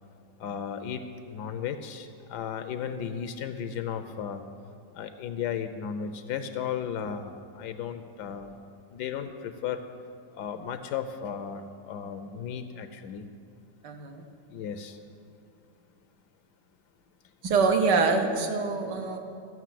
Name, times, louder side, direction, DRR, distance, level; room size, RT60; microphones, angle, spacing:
voice 1, 0.4-4.4 4.9-8.6 8.9-9.8 10.3-13.3 14.5-15.0, left 8 dB, 80° left, 9 dB, 1.1 m, -35 dB
voice 2, 13.8-14.3 17.4-19.2, right 4 dB, 85° right, 5 dB, 1.6 m, -25 dB
14.0 x 6.1 x 7.5 m, 2.4 s
omnidirectional pair, 1.8 m